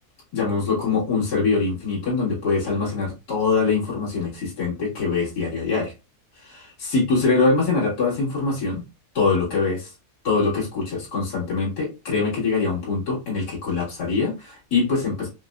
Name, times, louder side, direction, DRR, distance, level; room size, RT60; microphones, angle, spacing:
voice 1, 0.3-5.9 6.4-8.8 9.1-9.9 10.2-15.3, left 4 dB, 90° left, 2.5 m, -23 dB
5.6 x 2.1 x 2.4 m
omnidirectional pair, 1.7 m